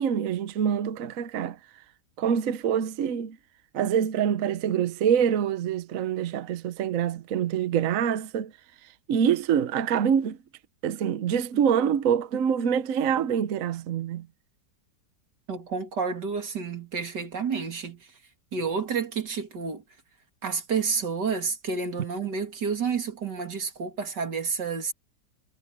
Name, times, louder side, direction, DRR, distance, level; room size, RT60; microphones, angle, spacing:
voice 1, 0.0-1.6 2.2-3.4 3.7-8.5 9.1-10.4 10.8-14.3, right 8 dB, 60° right, 1.1 m, -25 dB
voice 2, 15.5-18.1 18.5-19.8 20.4-24.9, right 5 dB, 85° right, 3.1 m, -30 dB
omnidirectional pair, 1.8 m